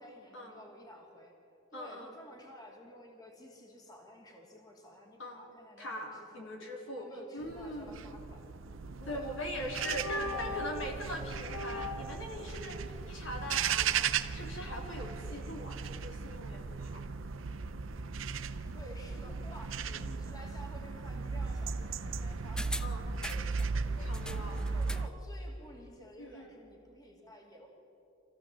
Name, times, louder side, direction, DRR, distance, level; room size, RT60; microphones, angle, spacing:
voice 1, 0.0-1.3 1.7-6.5 6.9-8.4 9.0-9.4 9.7-9.9 10.2-11.0 18.7-24.1 24.7-27.7, equal, 20° left, 0 dB, 2.6 m, -52 dB
voice 2, 1.7-2.1 5.2-5.5 5.8-7.1 7.3-8.0 9.1-17.0 22.8-23.0 24.0-24.9 26.2-26.5, left 1 dB, 65° left, 0 dB, 3.4 m, -41 dB
sound 1, 7.4-25.1, right 5 dB, 70° right, 0.7 m, -37 dB
sound 2, 9.1-9.4 9.8-10.9 11.4-12.2, left 1 dB, 80° left, 1.2 m, -40 dB
sound 3, 22.6-23.7 24.1-25.2 25.5-25.6, left 1 dB, 5° left, 0.5 m, -42 dB
26.0 x 15.5 x 7.5 m, 2.9 s
head